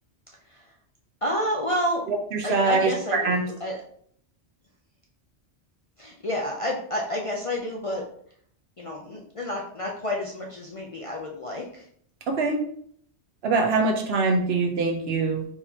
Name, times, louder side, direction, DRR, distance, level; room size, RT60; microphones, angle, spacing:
voice 1, 1.2-2.0 2.4-3.8 6.0-8.0 8.8-11.9, left 1 dB, 40° left, -1 dB, 0.5 m, -30 dB
voice 2, 2.1-3.4 12.3-12.6 13.4-15.5, right 3 dB, 65° right, 4 dB, 0.9 m, -23 dB
4.3 x 3.6 x 2.8 m, 0.63 s
omnidirectional pair, 1.2 m